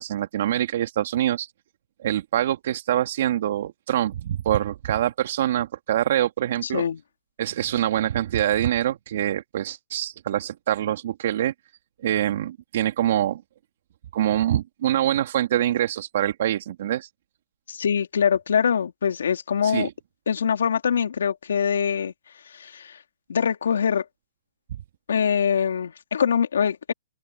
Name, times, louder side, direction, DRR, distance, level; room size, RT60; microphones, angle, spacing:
voice 1, 0.0-1.5 2.0-6.8 7.4-11.5 12.0-13.4 14.1-17.1 19.6-19.9 24.7-24.8, right 11 dB, 55° right, 2.1 m, -25 dB
voice 2, 6.6-7.0 17.7-19.9 20.3-22.1 22.5-23.0 23.3-24.0 25.1-26.9, left 7 dB, 75° left, 2.7 m, -23 dB
open air
hypercardioid pair, 150°, 0 cm